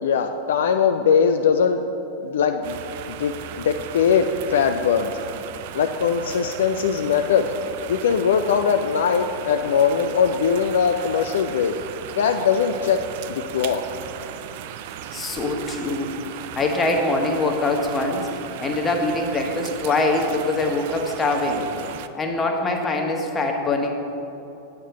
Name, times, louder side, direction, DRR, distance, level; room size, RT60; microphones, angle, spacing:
voice 1, 0.0-1.8 2.2-2.8 3.1-5.1 5.7-7.5 7.9-11.7 12.2-13.0 13.3-13.8, left 6 dB, 60° left, 6 dB, 0.4 m, -21 dB
sound 1, 2.6-22.1, right 10 dB, 50° right, 0.4 m, -37 dB
voice 2, 15.1-18.3 18.6-21.7 22.1-23.9, left 2 dB, 15° left, 1 dB, 1.4 m, -23 dB
9.0 x 6.5 x 7.0 m, 3.0 s
figure-of-eight pair, 90°, 0 cm